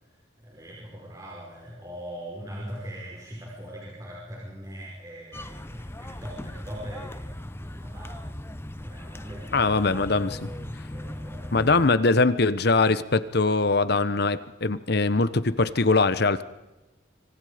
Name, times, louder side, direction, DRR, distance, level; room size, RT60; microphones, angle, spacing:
voice 1, 0.4-8.3 8.8-12.1, equal, 20° right, -4 dB, 5.4 m, -41 dB
sound 1, 5.3-11.9, left 1 dB, 15° left, 0.9 m, -38 dB
voice 2, 9.5-10.4 11.5-16.4, left 3 dB, 60° left, 14 dB, 1.0 m, -22 dB
26.5 x 25.5 x 5.1 m, 1.1 s
head